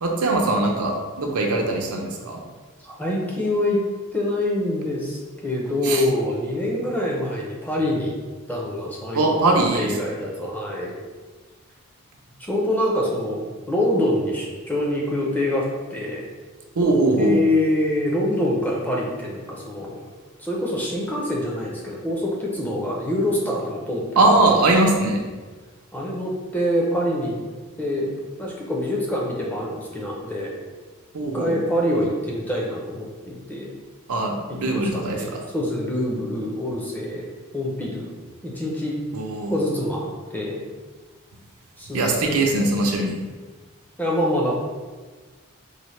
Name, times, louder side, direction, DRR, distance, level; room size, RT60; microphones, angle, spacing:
voice 1, 0.0-2.4 5.8-6.0 9.1-10.0 16.8-17.3 24.2-25.2 31.1-31.5 34.1-35.4 39.1-39.6 41.9-43.2, right 2 dB, 80° right, 1 dB, 0.6 m, -21 dB
voice 2, 2.8-3.8 4.1-8.1 8.5-9.2 9.7-10.9 12.4-16.2 17.0-20.0 20.4-24.2 25.9-27.4 27.8-28.1 28.4-30.5 31.3-33.7 34.7-37.2 37.5-38.2 38.4-39.0 39.5-40.6 41.8-42.4 44.0-44.6, left 1 dB, 5° left, -3 dB, 0.4 m, -25 dB
4.0 x 2.1 x 3.1 m, 1.4 s
head